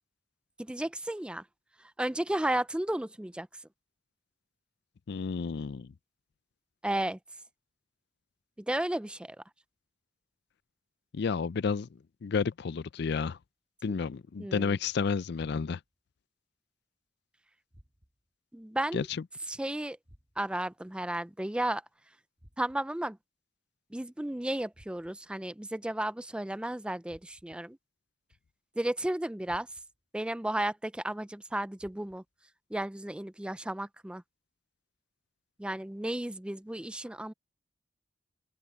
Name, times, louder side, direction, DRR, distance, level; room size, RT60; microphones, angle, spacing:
voice 1, 0.6-1.4 2.0-3.5 6.8-7.2 8.6-9.4 13.8-13.9 14.4-14.8 18.5-19.1 19.5-20.0 20.4-21.8 22.6-23.2 23.9-27.8 28.8-29.7 30.1-32.2 32.7-34.2 35.6-37.3, right 1 dB, 5° right, 0.4 m, -33 dB
voice 2, 5.1-5.9 11.1-11.9 12.2-13.4 13.8-15.8 18.9-19.0, left 5 dB, 60° left, 0.4 m, -31 dB
sound 1, 15.4-16.0 17.7-18.3 20.0-20.7 22.4-23.0 24.7-25.4 27.1-27.7 29.4-30.1 31.8-32.4, equal, 25° right, 2.5 m, -60 dB
open air
head